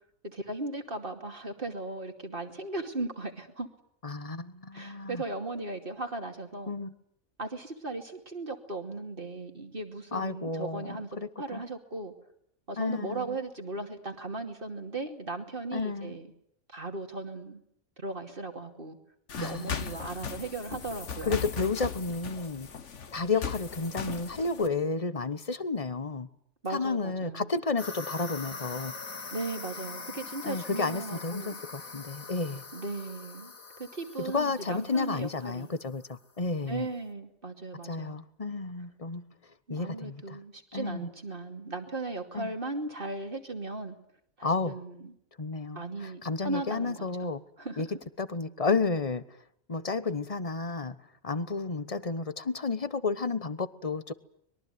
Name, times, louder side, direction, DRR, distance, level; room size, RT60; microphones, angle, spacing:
voice 1, 0.2-3.7 4.7-6.7 7.4-11.1 11.4-12.1 12.7-16.3 16.7-17.6 18.0-19.0 19.4-21.4 26.6-27.5 29.3-31.6 32.7-33.5 33.8-35.7 36.7-38.2 39.7-44.0 44.4-45.1 45.7-47.3 47.6-47.9, right 2 dB, 40° right, 2.8 m, -37 dB
voice 2, 4.0-5.2 6.7-6.9 10.1-11.6 12.8-13.4 15.7-16.1 19.4-20.0 21.2-22.7 23.1-26.3 26.7-28.9 30.4-32.6 34.2-36.9 37.8-39.2 39.7-40.4 40.7-41.1 42.3-42.5 44.4-44.7 45.4-47.4 47.8-47.9 48.2-49.4 49.7-50.9 51.2-54.1, left 4 dB, 30° left, 1.1 m, -32 dB
sound 1, 19.3-24.7, left 6 dB, 60° left, 1.6 m, -38 dB
sound 2, 27.8-36.0, left 4 dB, 80° left, 2.6 m, -43 dB
24.0 x 22.0 x 9.3 m
omnidirectional pair, 1.4 m